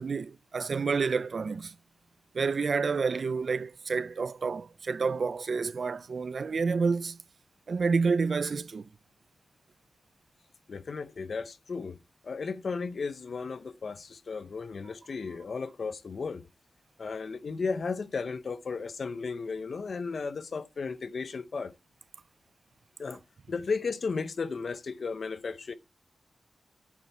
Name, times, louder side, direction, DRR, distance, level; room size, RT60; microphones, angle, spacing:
voice 1, 0.0-1.7 2.3-7.2 7.7-8.9, right 4 dB, 50° right, 0.5 m, -29 dB
voice 2, 10.7-12.0 12.2-16.5 17.0-21.7 23.0-23.2 23.5-25.7, left 4 dB, 50° left, 0.7 m, -34 dB
10.0 x 9.0 x 4.2 m
wide cardioid pair, 180°, 0 cm